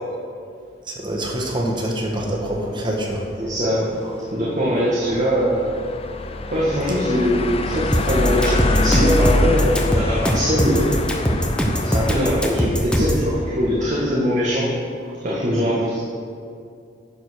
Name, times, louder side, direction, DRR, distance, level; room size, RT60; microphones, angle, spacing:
voice 1, 0.9-3.2, right 1 dB, 25° right, -1 dB, 1.4 m, -25 dB
sound 1, 2.0-14.2, left 2 dB, 35° left, 0.5 m, -26 dB
voice 2, 3.4-3.9 4.3-5.6 6.5-10.9 11.8-14.7 15.2-16.0, equal, 45° right, -8 dB, 1.8 m, -21 dB
sound 2, 7.9-13.2, equal, 5° left, 0.9 m, -21 dB
11.0 x 5.3 x 6.3 m, 2.4 s
head